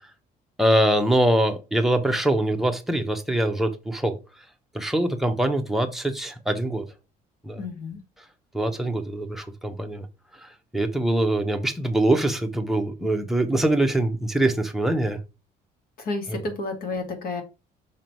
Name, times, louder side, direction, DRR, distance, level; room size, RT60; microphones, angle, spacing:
voice 1, 0.6-4.2 4.7-6.9 7.4-7.6 8.5-10.1 10.3-15.2 16.3-16.4, right 1 dB, ahead, 1.1 m, -23 dB
voice 2, 7.6-8.0 16.0-17.4, left 3 dB, 60° left, 2.0 m, -31 dB
6.4 x 3.7 x 4.5 m
cardioid pair, 110°, 17 cm